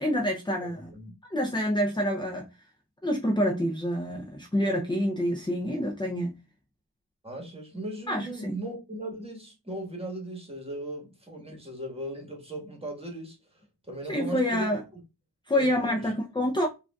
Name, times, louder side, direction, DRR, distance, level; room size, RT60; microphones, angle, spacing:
voice 1, 0.0-0.9 1.3-2.5 3.0-6.4 8.1-8.6 14.1-14.8 15.5-16.7, equal, 10° left, 0.5 m, -27 dB
voice 2, 7.2-14.7 15.5-16.1, right 1 dB, 15° right, 1.4 m, -38 dB
4.8 x 2.6 x 2.2 m
wide cardioid pair, 90°, 43 cm